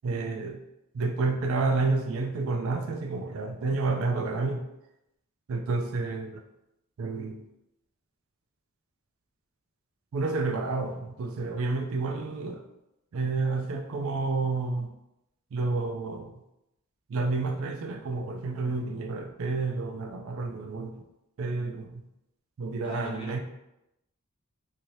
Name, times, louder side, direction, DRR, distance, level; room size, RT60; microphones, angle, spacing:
voice 1, 0.0-0.6 0.9-4.6 5.5-6.4 7.0-7.4 10.1-12.6 13.1-14.9 15.5-16.3 17.1-20.9 21.4-22.0 22.6-23.4, right 3 dB, 65° right, 5 dB, 0.4 m, -30 dB
voice 2, 22.7-23.4, left 2 dB, 20° left, -3 dB, 0.6 m, -42 dB
2.7 x 2.7 x 3.0 m, 0.88 s
head